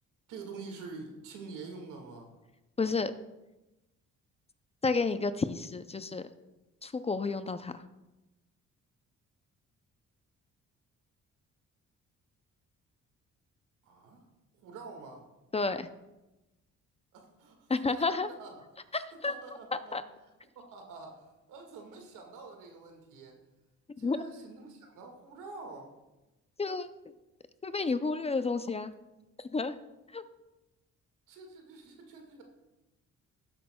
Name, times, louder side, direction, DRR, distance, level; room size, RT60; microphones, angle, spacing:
voice 1, 0.3-2.3 13.8-14.2 14.6-15.3 17.1-18.5 19.3-19.9 20.6-23.4 24.0-25.9 31.3-32.4, right 4 dB, 90° right, 3 dB, 1.9 m, -47 dB
voice 2, 2.8-3.1 4.8-6.3 6.8-7.8 15.5-15.9 17.7-18.3 18.9-19.3 19.9-20.0 24.0-24.2 26.6-26.9 27.6-28.9 29.4-29.8 30.1-30.2, left 4 dB, 20° left, 12 dB, 0.4 m, -31 dB
15.0 x 8.5 x 2.3 m, 1.0 s
cardioid pair, 90°, 30 cm